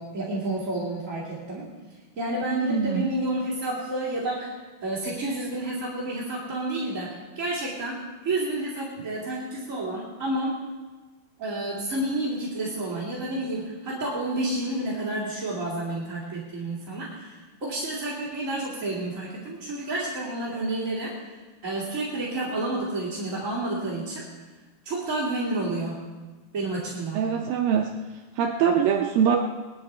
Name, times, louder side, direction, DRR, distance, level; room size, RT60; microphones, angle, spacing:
voice 1, 0.0-1.7 2.2-4.5 4.8-8.0 8.2-10.6 11.4-21.3 21.6-24.2 24.8-26.0 26.5-27.2, right 2 dB, 25° right, -7 dB, 1.9 m, -30 dB
voice 2, 2.7-3.1 27.1-27.9 28.4-29.4, right 8 dB, 80° right, 2 dB, 2.1 m, -23 dB
20.0 x 11.5 x 4.3 m, 1.3 s
omnidirectional pair, 4.9 m